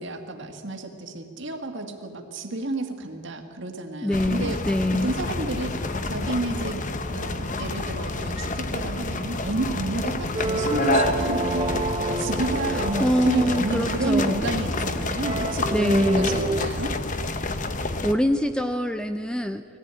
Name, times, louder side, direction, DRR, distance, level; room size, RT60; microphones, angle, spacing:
voice 1, 0.0-4.6 4.9-6.8 7.1-11.8 12.2-16.9, right 2 dB, 55° right, 5 dB, 1.9 m, -30 dB
voice 2, 4.0-5.1 12.7-14.5 15.7-16.3 18.0-19.7, equal, 5° left, 9 dB, 0.4 m, -24 dB
sound 1, 4.1-18.1, left 2 dB, 35° left, 0.8 m, -29 dB
sound 2, 5.8-6.0 6.3-6.5 6.9-7.0 7.2-7.9 8.8-9.5 10.8-11.0 11.9-12.6 13.6-14.0 14.4-14.6 15.4-15.7 17.0-17.1 17.6-17.7, left 1 dB, 60° left, 3.4 m, -51 dB
sound 3, 10.3-16.7, right 2 dB, 25° right, 0.9 m, -29 dB
20.0 x 15.0 x 9.1 m, 2.4 s
head